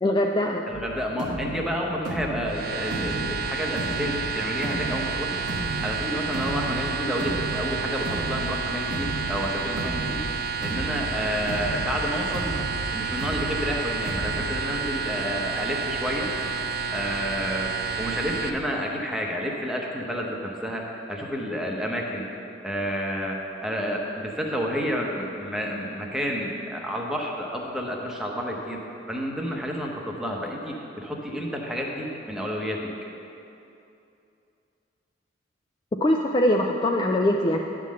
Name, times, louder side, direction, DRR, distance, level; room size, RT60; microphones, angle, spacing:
voice 1, 0.0-0.6 36.0-37.6, left 1 dB, 25° left, 1 dB, 0.3 m, -22 dB
voice 2, 0.7-5.4 5.8-10.2 10.6-12.6 12.9-16.3 16.9-22.2 22.6-28.8 29.1-32.9, equal, 5° right, -1 dB, 0.8 m, -30 dB
sound 1, 0.7-14.7, right 1 dB, 75° right, 1.0 m, -35 dB
sound 2, 2.5-18.5, right 5 dB, 50° right, 0.5 m, -30 dB
10.5 x 3.8 x 7.4 m, 2.7 s
head